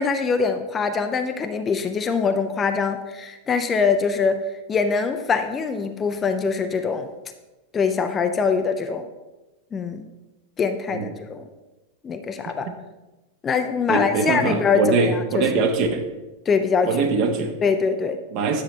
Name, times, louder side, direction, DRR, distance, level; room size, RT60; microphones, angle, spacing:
voice 1, 0.0-4.4 4.7-7.1 7.7-9.1 9.7-10.1 10.6-11.4 12.0-12.7 13.4-15.5 16.5-17.0 17.6-18.2, left 5 dB, 20° left, 7 dB, 0.5 m, -23 dB
voice 2, 13.9-16.0 16.8-17.5 18.3-18.6, right 4 dB, 40° right, 4 dB, 1.2 m, -22 dB
9.9 x 7.2 x 3.2 m, 1.1 s
figure-of-eight pair, 90°, 0 cm